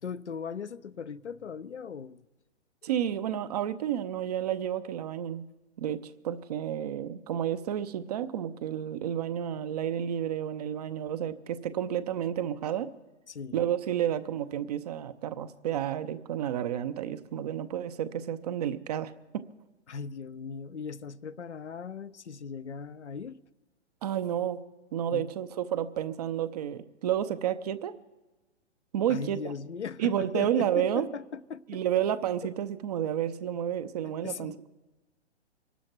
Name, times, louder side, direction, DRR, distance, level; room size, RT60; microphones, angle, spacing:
voice 1, 0.0-2.2 2.8-2.9 13.3-13.6 19.9-23.4 25.1-25.3 29.1-31.8 34.2-34.7, left 6 dB, 75° left, 0.8 m, -39 dB
voice 2, 2.8-5.4 5.8-12.9 13.5-19.4 24.0-24.6 24.9-28.0 28.9-29.4 30.0-31.0 31.7-34.7, right 10 dB, 35° right, 0.7 m, -31 dB
24.0 x 12.5 x 4.6 m
figure-of-eight pair, 125°, 34 cm